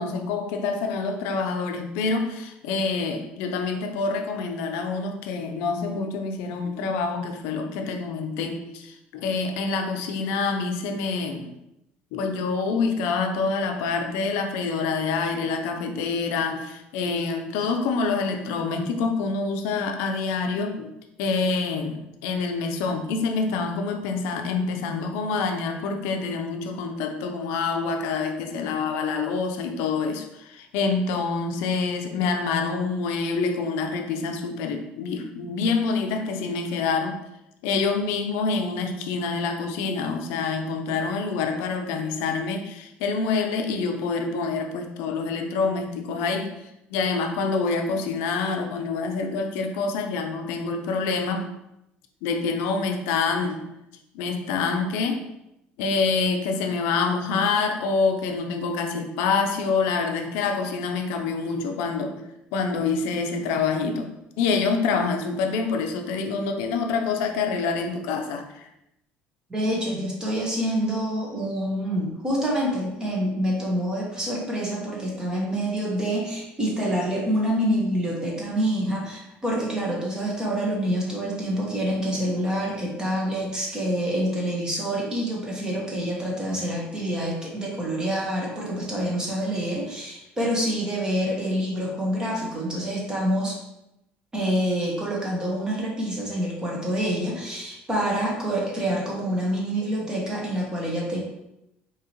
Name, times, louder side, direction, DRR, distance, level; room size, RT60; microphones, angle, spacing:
voice 1, 0.0-11.5 12.1-20.9 21.2-37.2 37.6-46.6 46.9-51.5 52.2-53.6 54.1-55.2 55.8-64.1 64.4-68.7, left 4 dB, 85° left, 5 dB, 0.5 m, -26 dB
voice 2, 69.5-93.6 94.3-101.2, equal, 20° right, -2 dB, 1.2 m, -27 dB
4.8 x 3.0 x 2.9 m, 0.86 s
cardioid pair, 115°, 4 cm